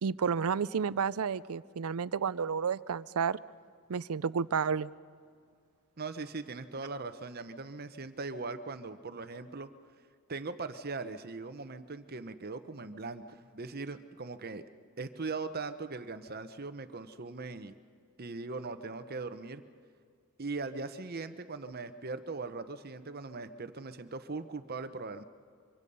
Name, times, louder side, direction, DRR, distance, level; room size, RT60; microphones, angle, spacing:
voice 1, 0.0-3.4 3.9-4.9, right 6 dB, 85° right, 18 dB, 0.5 m, -31 dB
voice 2, 6.0-9.7 10.3-14.6 15.0-17.7 18.2-19.6 20.4-25.2, right 3 dB, 45° right, 10 dB, 0.9 m, -40 dB
25.0 x 24.5 x 5.5 m, 2.1 s
head